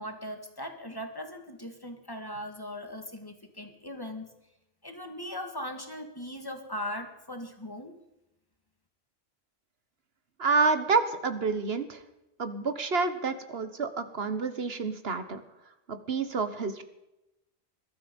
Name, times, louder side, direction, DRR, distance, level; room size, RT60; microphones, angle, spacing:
voice 1, 0.0-4.3 4.8-7.9, left 1 dB, 20° left, 5 dB, 2.0 m, -39 dB
voice 2, 10.4-12.0 12.4-15.4 15.9-16.8, right 4 dB, 65° right, 10 dB, 1.6 m, -28 dB
21.0 x 12.5 x 5.4 m, 0.92 s
omnidirectional pair, 1.1 m